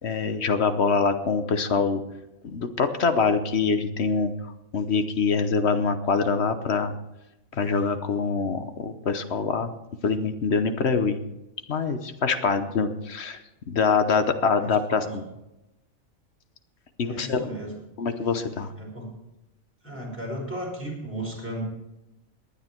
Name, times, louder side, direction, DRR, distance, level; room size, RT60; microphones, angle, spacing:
voice 1, 0.0-2.0 2.4-4.3 4.7-6.9 7.6-9.7 10.0-11.2 11.7-13.4 13.7-15.2 17.0-17.5 18.0-18.7, left 5 dB, 55° left, 9 dB, 1.2 m, -24 dB
voice 2, 14.6-15.3 17.0-17.7 18.8-19.1 19.8-21.6, right 1 dB, 10° right, -3 dB, 5.1 m, -35 dB
19.0 x 10.0 x 4.5 m, 0.93 s
omnidirectional pair, 1.4 m